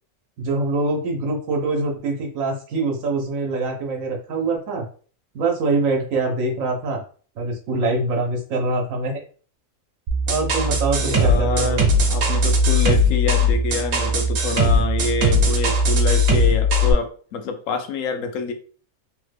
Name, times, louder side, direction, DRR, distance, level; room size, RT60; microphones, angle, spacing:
voice 1, 0.4-4.9 5.3-7.0 7.4-9.2 10.3-11.8, right 3 dB, 90° right, 1 dB, 1.1 m, -24 dB
sound 1, 10.1-16.9, left 1 dB, 65° right, 0.9 m, -19 dB
voice 2, 11.0-18.5, left 4 dB, 80° left, 7 dB, 1.0 m, -27 dB
3.3 x 2.1 x 3.2 m, 0.42 s
omnidirectional pair, 1.4 m